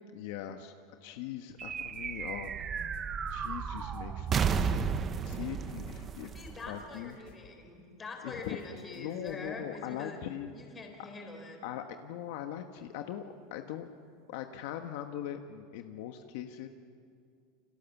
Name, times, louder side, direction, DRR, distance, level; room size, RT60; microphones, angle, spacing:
voice 1, 0.1-0.7 1.0-2.7 3.3-6.4 6.7-7.2 8.2-8.6 8.9-10.5 11.6-13.9 14.3-16.7, left 11 dB, 60° left, 5 dB, 1.3 m, -41 dB
sound 1, 1.6-2.0 2.3-7.6 8.4-9.4, left 9 dB, 75° left, 4.5 m, -59 dB
sound 2, 1.6-7.3, right 6 dB, 20° right, 0.9 m, -33 dB
voice 2, 6.3-10.2 10.5-11.6, left 3 dB, 15° left, 2 dB, 4.4 m, -44 dB
29.5 x 26.5 x 7.3 m, 2.3 s
supercardioid pair, 170°, 0 cm